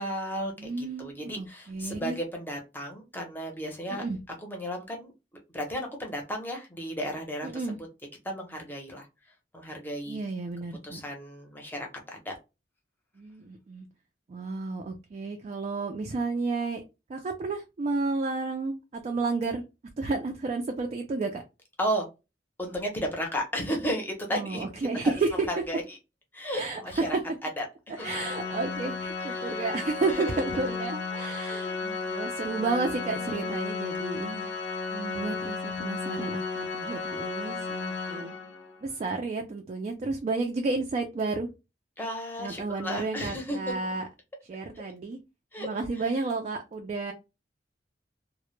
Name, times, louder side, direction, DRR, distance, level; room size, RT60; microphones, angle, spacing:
voice 1, 0.0-4.0 4.4-5.1 5.5-7.9 8.2-9.1 9.5-10.2 10.8-12.4 21.8-22.1 22.6-24.6 25.5-26.0 26.3-27.1 27.4-27.6 28.0-28.1 29.3-29.6 30.1-30.4 31.4-31.8 33.1-33.6 42.0-43.7 45.5-45.7, equal, 10° left, 1 dB, 0.6 m, -34 dB
voice 2, 0.6-2.2 3.9-4.2 7.4-7.8 10.1-11.0 13.2-13.9 14.3-16.8 17.1-19.6 20.0-21.4 24.3-25.5 26.5-27.0 27.9-34.5 34.9-38.3 38.8-41.5 42.4-44.1 44.5-45.2 45.6-47.1, right 3 dB, 40° right, 4 dB, 0.3 m, -32 dB
Organ, 28.0-38.8, left 4 dB, 85° left, 0.6 m, -34 dB
2.1 x 2.0 x 3.0 m, 0.26 s
head